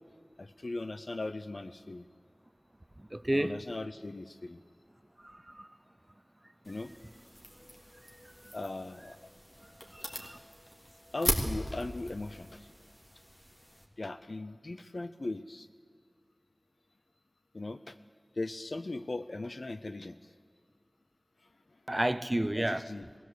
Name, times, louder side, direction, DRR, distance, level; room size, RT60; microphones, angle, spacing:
voice 1, 0.4-2.1 3.3-4.6 6.7-6.9 8.5-9.2 11.1-12.7 14.0-15.7 17.5-18.0 18.4-20.3 22.5-23.1, left 2 dB, 75° left, 0.6 m, -39 dB
voice 2, 3.1-3.6 5.5-5.7 9.9-10.4 21.9-22.9, right 1 dB, 25° right, 0.7 m, -30 dB
sound 1, 6.6-13.9, equal, 25° left, 3.1 m, -39 dB
21.0 x 15.5 x 8.3 m
wide cardioid pair, 45°, 0 cm